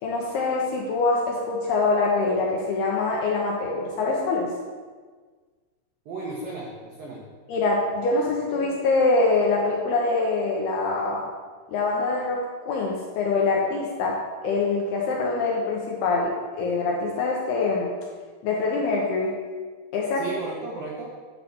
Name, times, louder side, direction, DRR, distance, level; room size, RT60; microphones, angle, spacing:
voice 1, 0.0-4.5 7.5-11.2 11.7-17.9 18.4-19.4 19.9-20.2, left 3 dB, 75° left, -2 dB, 2.4 m, -24 dB
voice 2, 6.1-7.2 20.2-21.1, right 3 dB, 85° right, -2 dB, 2.0 m, -34 dB
10.5 x 4.0 x 6.9 m, 1.5 s
omnidirectional pair, 5.6 m